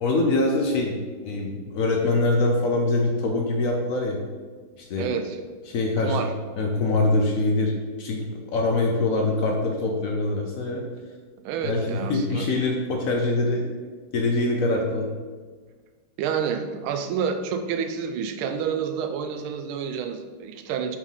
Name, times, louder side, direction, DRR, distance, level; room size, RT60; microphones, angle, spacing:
voice 1, 0.0-1.0 1.2-4.2 4.8-5.1 5.7-6.3 6.6-7.7 8.0-8.2 8.5-10.8 11.6-13.6 14.1-15.1, left 2 dB, 85° left, 1 dB, 0.7 m, -23 dB
voice 2, 5.0-5.4 6.0-6.3 11.4-12.5 16.2-21.0, right 7 dB, 80° right, 7 dB, 1.4 m, -29 dB
6.1 x 3.7 x 5.5 m, 1.5 s
omnidirectional pair, 2.4 m